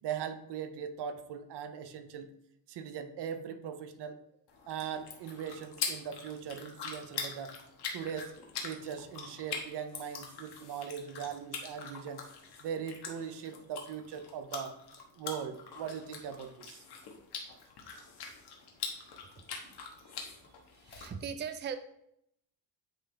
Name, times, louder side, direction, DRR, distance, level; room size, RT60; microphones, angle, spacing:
voice 1, 0.0-2.3 2.7-4.2 4.7-7.5 7.9-8.3 8.6-12.2 12.6-14.7 15.2-16.8, right 8 dB, 80° right, 8 dB, 0.7 m, -40 dB
sound 1, 4.5-21.1, left 5 dB, 75° left, 1.3 m, -43 dB
voice 2, 19.4-20.5 20.8-21.8, right 7 dB, 25° right, 10 dB, 0.4 m, -42 dB
9.0 x 3.4 x 3.3 m, 0.76 s
cardioid pair, 120°, 40 cm